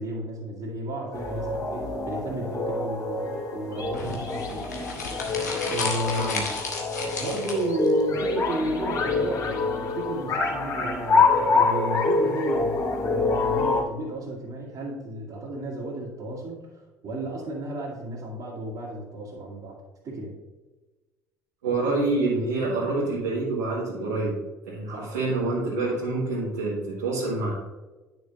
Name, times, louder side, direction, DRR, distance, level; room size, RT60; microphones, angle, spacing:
voice 1, 0.0-4.7 5.7-6.3 7.2-20.3 24.9-25.1, right 1 dB, 50° right, -6 dB, 2.6 m, -33 dB
sound 1, 1.1-13.8, left 3 dB, 40° left, 2.2 m, -26 dB
sound 2, 3.9-7.9, left 3 dB, 85° left, 1.4 m, -33 dB
voice 2, 21.6-24.4 24.6-27.5, right 2 dB, 75° right, -8 dB, 1.9 m, -27 dB
10.0 x 6.3 x 2.6 m, 1.2 s
figure-of-eight pair, 55°, 9 cm